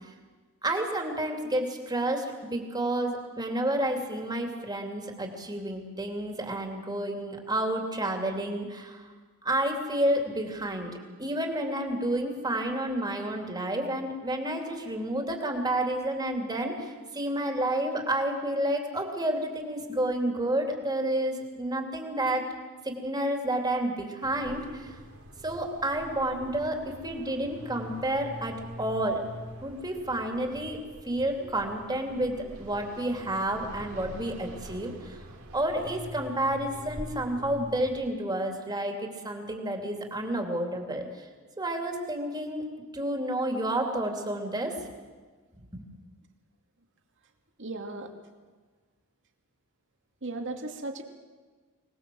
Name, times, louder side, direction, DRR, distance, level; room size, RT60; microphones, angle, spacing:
voice 1, 0.6-9.1 9.4-10.9 11.2-22.5 22.8-25.0 25.4-29.2 29.6-30.8 31.1-35.2 35.5-41.1 41.6-42.6 42.9-44.7 45.7-45.8, right 1 dB, 20° right, 3 dB, 2.9 m, -30 dB
sound 1, 24.2-38.1, equal, 90° right, 3.3 m, -44 dB
voice 2, 47.6-48.1 50.2-51.0, right 2 dB, 60° right, 4 dB, 2.6 m, -36 dB
24.5 x 19.5 x 7.8 m, 1.4 s
head